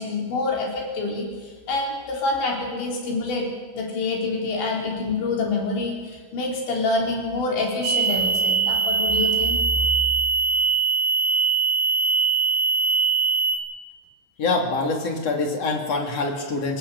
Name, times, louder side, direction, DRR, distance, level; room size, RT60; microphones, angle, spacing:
voice 1, 0.0-3.5 3.7-9.6, left 3 dB, 70° left, 0 dB, 6.3 m, -26 dB
sound 1, 7.8-13.6, right 5 dB, 40° right, 5.0 m, -21 dB
voice 2, 14.4-16.8, left 3 dB, 35° left, 2 dB, 3.4 m, -25 dB
25.0 x 19.5 x 8.1 m, 1.4 s
omnidirectional pair, 5.5 m